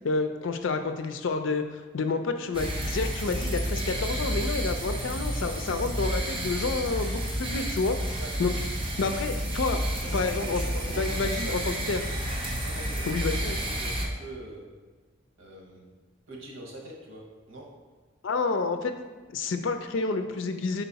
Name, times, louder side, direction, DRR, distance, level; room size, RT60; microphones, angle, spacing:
voice 1, 0.0-8.0 8.4-8.5 8.8-9.8 10.1-12.0 13.1-13.6 18.2-18.9 19.3-20.8, left 4 dB, 70° left, 7 dB, 0.5 m, -29 dB
sound 1, 2.5-14.1, right 1 dB, 25° right, 0.8 m, -30 dB
voice 2, 9.9-10.5 10.8-11.8 12.6-13.1 13.5-14.7 15.4-15.9 16.3-17.7, right 1 dB, 85° right, -1 dB, 1.2 m, -44 dB
5.7 x 4.1 x 4.0 m, 1.4 s
head